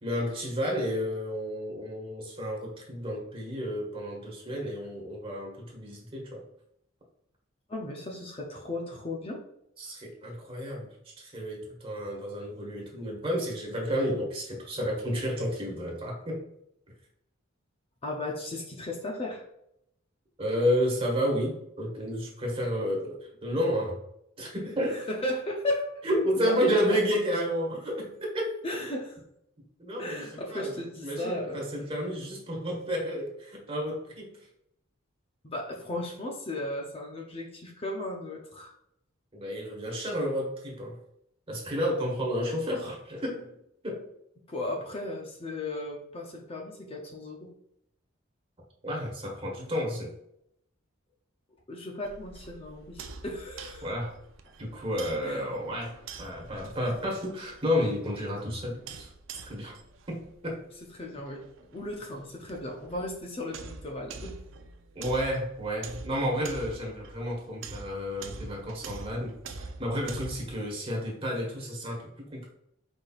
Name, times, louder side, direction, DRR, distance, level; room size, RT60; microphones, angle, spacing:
voice 1, 0.0-6.4 9.8-10.9 11.2-16.4 20.4-24.0 24.4-25.0 26.0-28.5 29.8-30.8 31.0-34.4 39.3-41.0 41.5-43.5 43.8-44.0 48.8-50.1 53.8-54.1 54.6-59.1 59.4-59.8 60.1-60.6 64.9-72.5, equal, 30° right, -1 dB, 1.3 m, -31 dB
voice 2, 7.7-9.4 18.0-19.5 24.9-26.0 26.4-27.2 28.6-29.2 30.0-31.6 35.4-38.7 44.5-47.5 51.7-53.9 55.2-55.5 60.9-61.4 61.7-64.3, left 1 dB, 30° left, 0 dB, 0.6 m, -35 dB
sound 1, 52.1-70.5, right 4 dB, 70° right, 0.5 m, -45 dB
4.9 x 4.2 x 2.4 m, 0.76 s
head